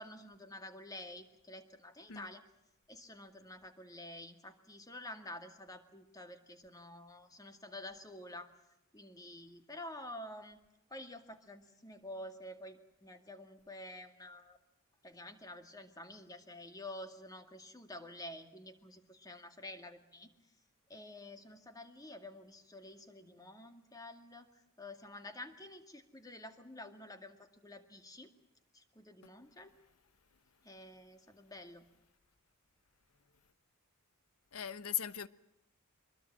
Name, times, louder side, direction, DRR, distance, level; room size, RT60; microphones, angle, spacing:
voice 1, 0.0-2.4 2.9-8.5 8.9-10.6 10.9-14.6 15.0-20.3 20.9-24.5 24.8-27.4 27.6-28.3 28.7-29.7 30.6-31.8, left 1 dB, 15° left, 2.2 m, -49 dB
voice 2, 34.5-35.3, left 10 dB, 80° left, 1.0 m, -38 dB
24.5 x 22.0 x 7.4 m
head